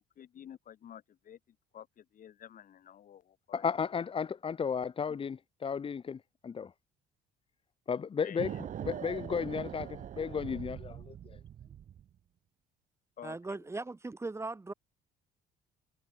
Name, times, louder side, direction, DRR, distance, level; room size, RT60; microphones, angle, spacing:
voice 1, 0.2-1.4 1.7-3.6 8.2-9.0 13.2-13.7, left 10 dB, 55° left, 7.3 m, -51 dB
voice 2, 3.5-6.7 7.9-8.5 8.8-11.4, left 6 dB, 30° left, 1.5 m, -34 dB
sound 1, 8.4-12.1, right 10 dB, 50° right, 1.4 m, -42 dB
voice 3, 13.2-14.7, right 3 dB, 15° right, 2.6 m, -39 dB
cardioid pair, 110°, 17 cm